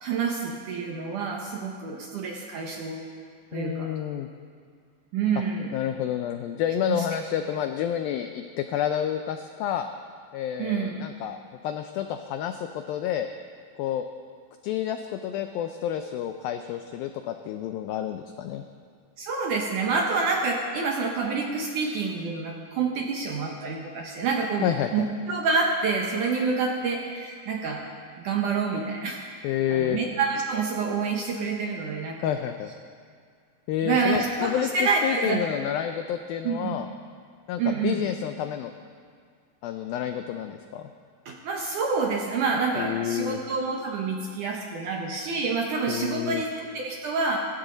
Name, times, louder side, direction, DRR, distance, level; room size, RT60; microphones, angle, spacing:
voice 1, 0.0-3.0 3.5-3.9 5.1-5.7 6.9-7.0 10.6-10.9 19.2-27.8 28.2-29.2 29.7-32.3 33.8-35.4 36.4-36.8 37.6-38.0 41.3-47.4, right 4 dB, 65° right, 0 dB, 2.0 m, -27 dB
voice 2, 3.5-4.3 5.7-9.9 10.3-13.3 13.8-14.1 14.6-18.6 24.6-25.1 29.4-30.0 32.2-32.7 33.7-36.9 37.5-38.7 39.6-40.9 42.8-43.4 45.9-46.4, left 10 dB, 90° left, 7 dB, 2.0 m, -29 dB
26.0 x 14.0 x 4.0 m, 2.1 s
omnidirectional pair, 5.0 m